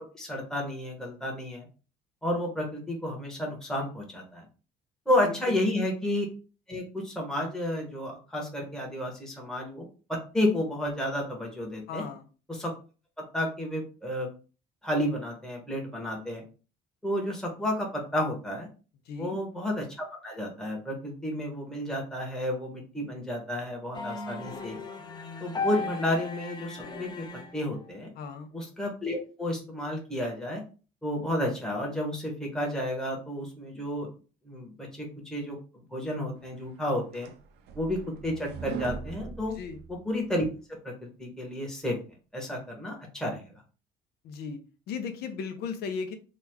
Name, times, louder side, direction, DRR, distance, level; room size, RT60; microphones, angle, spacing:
voice 1, 0.0-1.7 2.2-4.5 5.1-6.3 6.7-12.0 12.5-12.7 13.3-14.3 14.8-16.4 17.0-18.7 19.1-24.8 25.4-27.3 27.5-28.1 28.5-30.6 31.0-34.1 34.4-35.6 35.9-37.3 37.7-39.6 39.9-40.4 40.8-42.0 42.3-43.4, left 1 dB, 5° left, -1 dB, 1.0 m, -31 dB
voice 2, 5.2-5.5 11.9-12.3 19.1-19.4 28.2-28.5 39.6-39.8 44.2-44.6 44.9-46.2, left 5 dB, 70° left, 8 dB, 0.6 m, -36 dB
sound 1, 23.9-27.9, left 4 dB, 25° left, 0.6 m, -36 dB
sound 2, 36.7-40.3, right 5 dB, 75° right, 0.6 m, -40 dB
3.0 x 2.3 x 3.4 m, 0.36 s
cardioid pair, 110°, 17 cm